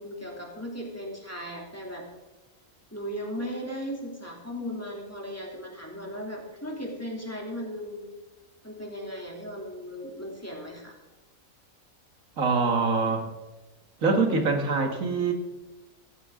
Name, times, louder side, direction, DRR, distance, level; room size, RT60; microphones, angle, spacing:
voice 1, 0.0-2.0 2.9-8.1 8.6-11.0, equal, 10° left, -1 dB, 2.9 m, -37 dB
voice 2, 12.4-13.2 14.0-15.3, right 4 dB, 75° right, 4 dB, 2.1 m, -24 dB
16.5 x 14.0 x 3.7 m, 1.1 s
omnidirectional pair, 1.4 m